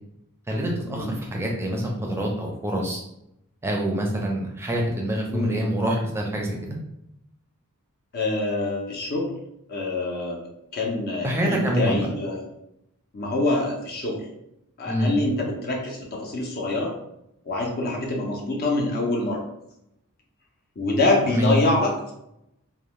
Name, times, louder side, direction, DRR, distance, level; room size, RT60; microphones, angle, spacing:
voice 1, 0.5-3.0 3.6-6.8 11.2-12.1 14.9-15.1 21.3-21.6, equal, 10° right, 0 dB, 0.5 m, -26 dB
voice 2, 5.3-5.7 8.1-9.3 9.7-10.4 10.7-12.4 13.1-14.2 14.8-16.9 17.4-19.4 20.8-22.1, left 2 dB, 45° left, -1 dB, 0.5 m, -25 dB
2.6 x 2.1 x 3.0 m, 0.81 s
head